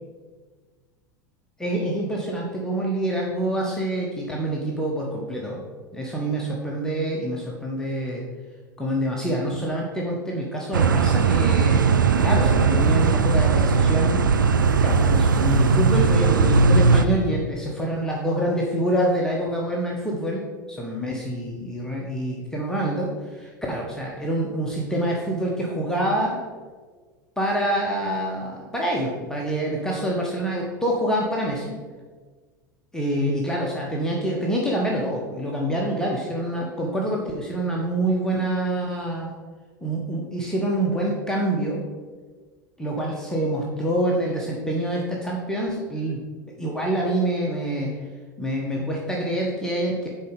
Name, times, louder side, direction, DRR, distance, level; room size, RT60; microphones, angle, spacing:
voice 1, 1.6-5.6 5.9-8.2 8.8-14.2 14.8-26.4 27.4-31.8 32.9-39.3 39.8-41.8 42.8-46.2 46.6-48.0 48.4-50.1, right 1 dB, 5° left, -3 dB, 1.1 m, -26 dB
sound 1, 10.7-17.1, right 5 dB, 75° right, 0.4 m, -18 dB
6.7 x 4.5 x 5.3 m, 1.4 s
figure-of-eight pair, 80°, 11 cm